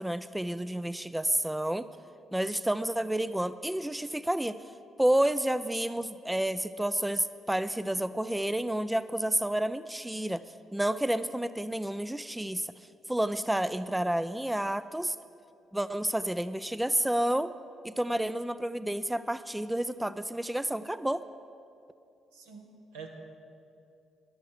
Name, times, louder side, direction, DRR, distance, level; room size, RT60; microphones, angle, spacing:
voice 1, 0.0-1.9 2.3-4.6 5.0-10.4 10.7-12.7 13.1-15.2 15.7-17.5 17.8-21.2, right 1 dB, 10° right, 14 dB, 0.4 m, -30 dB
voice 2, 22.3-23.1, right 6 dB, 80° right, 1 dB, 1.2 m, -46 dB
14.0 x 11.0 x 4.8 m, 2.6 s
hypercardioid pair, 45°, 0 cm